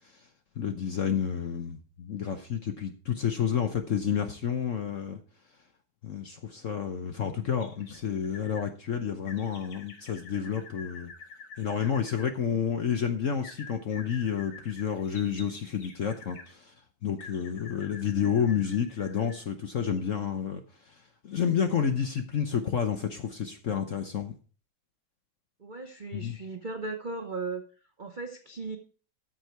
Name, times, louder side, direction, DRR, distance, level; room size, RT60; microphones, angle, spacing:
voice 1, 0.6-5.2 6.0-11.1 11.6-16.7 17.0-21.0 21.2-24.3 26.1-26.4, left 8 dB, 55° left, 7 dB, 0.9 m, -30 dB
sound 1, 7.6-8.7 9.3-12.3 13.4-16.5 17.2-19.4 19.9-20.0, left 5 dB, 75° left, 2.4 m, -48 dB
voice 2, 25.6-27.6 28.0-28.8, right 3 dB, 60° right, 6 dB, 0.5 m, -37 dB
13.5 x 6.5 x 4.5 m, 0.39 s
omnidirectional pair, 2.2 m